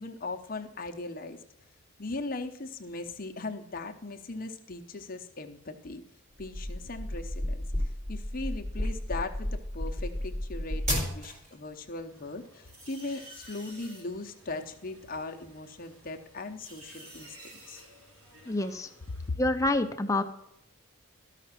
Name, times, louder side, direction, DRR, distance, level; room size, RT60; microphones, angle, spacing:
voice 1, 0.0-1.4 2.0-6.0 6.4-7.6 8.1-17.4 17.7-17.8 19.2-19.4, left 3 dB, 40° left, 4 dB, 0.8 m, -39 dB
sound 1, 6.4-11.5, left 1 dB, 30° right, 3.0 m, -32 dB
sound 2, 12.1-19.3, right 1 dB, 75° right, 4.6 m, -52 dB
voice 2, 18.5-18.9 19.4-20.2, left 2 dB, 15° left, 7 dB, 0.5 m, -27 dB
13.0 x 5.8 x 5.9 m, 0.81 s
head